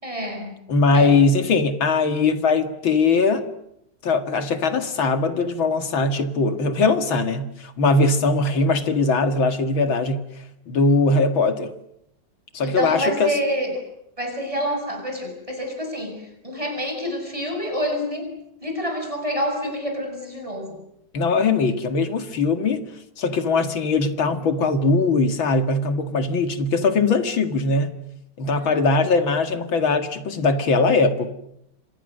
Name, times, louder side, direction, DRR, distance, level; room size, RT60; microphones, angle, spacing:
voice 1, 0.0-0.6 0.9-1.2 12.6-13.9 14.2-18.3 18.6-20.8 28.5-28.9, equal, 15° right, 3 dB, 7.3 m, -28 dB
voice 2, 0.7-3.4 4.0-10.2 10.7-11.7 12.5-13.3 21.1-22.9 23.2-28.0 28.4-31.3, left 3 dB, 80° left, 8 dB, 2.8 m, -20 dB
29.0 x 26.5 x 6.7 m, 0.78 s
omnidirectional pair, 2.2 m